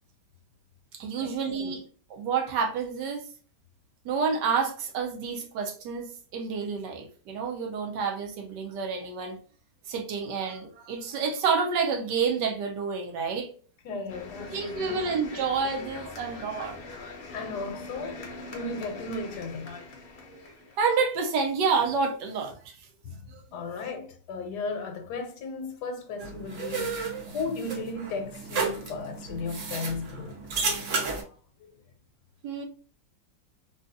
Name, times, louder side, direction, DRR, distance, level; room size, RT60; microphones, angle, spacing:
voice 1, 0.9-1.8 2.1-3.3 4.0-6.1 6.3-9.4 9.9-13.5 14.5-16.8 20.3-20.4 20.8-22.5 23.3-23.7 32.4-32.6, right 5 dB, 75° right, 1.3 m, -29 dB
voice 2, 13.8-15.1 17.3-19.8 23.0-23.2 23.5-30.4 30.7-30.8 31.6-31.7, left 3 dB, 75° left, 1.1 m, -35 dB
sound 1, 14.1-20.8, left 3 dB, 55° left, 0.6 m, -42 dB
sound 2, 26.2-31.2, right 4 dB, 60° right, 0.9 m, -32 dB
3.7 x 2.3 x 2.6 m
omnidirectional pair, 1.9 m